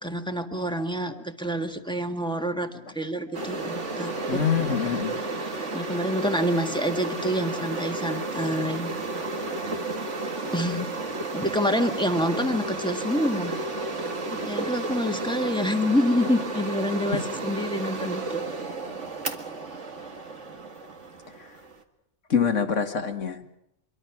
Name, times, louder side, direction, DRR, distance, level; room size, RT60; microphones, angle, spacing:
voice 1, 0.0-4.4 5.7-8.9 10.5-10.9 11.3-13.5 14.3-18.4, equal, 5° left, 5 dB, 1.6 m, -27 dB
sound 1, 3.3-21.8, right 2 dB, 70° right, 2.2 m, -32 dB
voice 2, 4.3-5.2 17.1-17.2 21.4-21.6 22.3-23.6, left 7 dB, 75° left, 6 dB, 2.2 m, -25 dB
25.0 x 23.0 x 6.0 m, 0.79 s
omnidirectional pair, 1.3 m